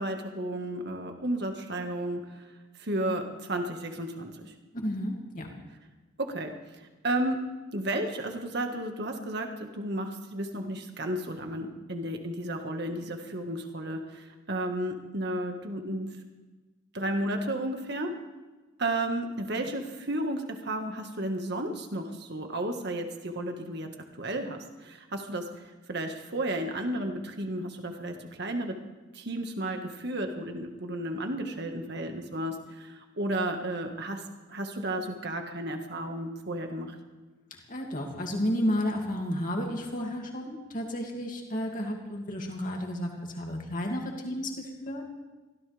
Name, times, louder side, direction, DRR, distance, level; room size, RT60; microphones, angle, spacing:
voice 1, 0.0-2.5 2.8-4.5 6.2-6.5 7.0-7.4 7.7-16.1 16.9-18.1 18.8-23.9 24.2-25.4 25.9-28.7 29.1-34.2 34.5-37.0, right 1 dB, 50° right, 4 dB, 1.8 m, -33 dB
voice 2, 4.7-5.5 37.7-45.1, equal, 40° left, 1 dB, 2.6 m, -32 dB
23.5 x 16.0 x 3.5 m, 1.2 s
head